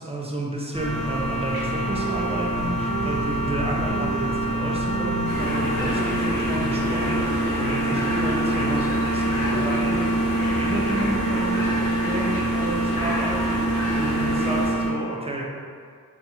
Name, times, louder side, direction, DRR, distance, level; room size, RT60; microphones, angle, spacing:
voice 1, 0.0-11.7 12.0-15.4, right 1 dB, 20° right, -3 dB, 0.3 m, -31 dB
sound 1, 0.7-14.9, right 2 dB, 50° left, 1.1 m, -26 dB
sound 2, 1.2-8.8, right 2 dB, 80° right, 0.6 m, -33 dB
sound 3, 5.3-14.7, left 1 dB, 70° left, 0.7 m, -28 dB
2.4 x 2.3 x 2.8 m, 2.1 s
wide cardioid pair, 100°, 35 cm